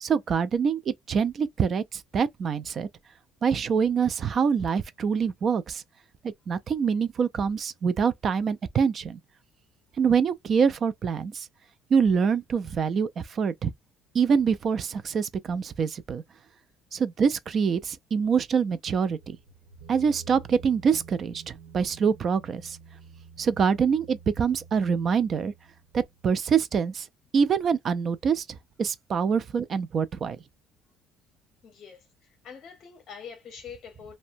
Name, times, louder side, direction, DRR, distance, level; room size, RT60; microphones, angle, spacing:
voice 1, 0.0-2.9 3.4-5.8 6.2-9.2 10.0-11.5 11.9-13.7 14.1-16.2 16.9-19.4 19.9-22.8 23.4-25.5 25.9-27.1 27.3-28.4 28.8-30.4, right 6 dB, 40° right, 0.3 m, -25 dB
sound 1, 18.9-26.4, right 5 dB, 60° right, 1.1 m, -49 dB
voice 2, 31.6-32.1 32.4-34.2, left 6 dB, 45° left, 0.7 m, -44 dB
2.6 x 2.1 x 2.6 m
cardioid pair, 120°, 0 cm